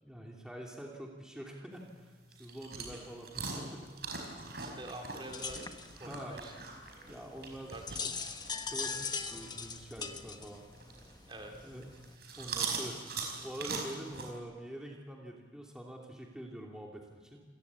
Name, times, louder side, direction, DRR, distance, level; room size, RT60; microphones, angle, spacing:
voice 1, 0.0-3.9 6.0-6.4 7.1-7.7 8.7-10.6 11.6-11.8 12.4-13.1 13.4-17.4, right 1 dB, 5° right, -1 dB, 3.0 m, -45 dB
sound 1, 1.7-14.3, right 4 dB, 60° right, 5.1 m, -43 dB
voice 2, 4.6-5.7 6.0-6.5 7.7-8.4 11.3-11.8, right 1 dB, 25° right, 2 dB, 3.1 m, -47 dB
sound 2, 5.3-12.2, left 5 dB, 25° left, 1.2 m, -41 dB
28.0 x 18.0 x 8.7 m, 1.4 s
head